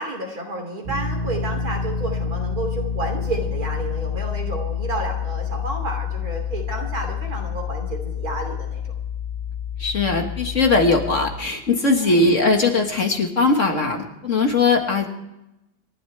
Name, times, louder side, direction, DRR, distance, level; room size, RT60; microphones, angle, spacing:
voice 1, 0.0-8.9 12.0-12.3, right 2 dB, 60° right, 3 dB, 3.5 m, -31 dB
sound 1, 0.8-11.3, left 7 dB, 40° right, 2.5 m, -28 dB
voice 2, 9.8-15.1, left 3 dB, 45° left, 4 dB, 1.9 m, -20 dB
28.5 x 12.0 x 3.3 m, 0.92 s
omnidirectional pair, 1.8 m